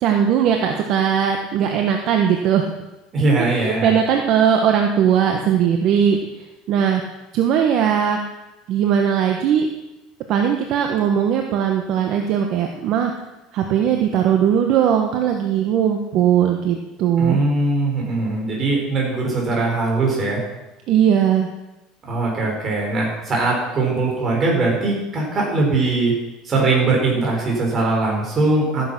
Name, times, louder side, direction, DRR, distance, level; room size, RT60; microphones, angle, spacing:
voice 1, 0.0-2.7 3.4-7.0 7.3-8.2 8.7-9.7 10.3-13.1 13.5-17.4 20.9-21.5, right 8 dB, 55° right, 3 dB, 1.3 m, -19 dB
voice 2, 3.1-3.9 17.2-20.4 22.0-26.1 26.4-28.9, right 3 dB, 30° right, -2 dB, 6.0 m, -21 dB
14.5 x 10.5 x 6.2 m, 1.0 s
cardioid pair, 135°, 0 cm